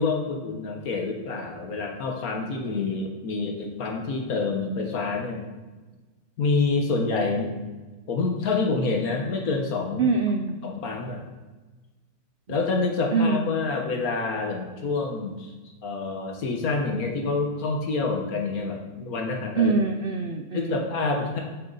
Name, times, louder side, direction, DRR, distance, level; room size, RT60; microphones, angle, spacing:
voice 1, 0.0-5.4 6.4-7.5 8.1-10.1 10.6-11.2 12.5-15.5 15.8-19.7 20.5-21.4, left 3 dB, 65° left, 2 dB, 1.7 m, -27 dB
voice 2, 10.0-10.6 12.5-12.6 13.1-13.5 19.6-20.9, right 4 dB, 80° right, 5 dB, 0.4 m, -24 dB
8.0 x 6.6 x 4.1 m, 1.2 s
omnidirectional pair, 1.7 m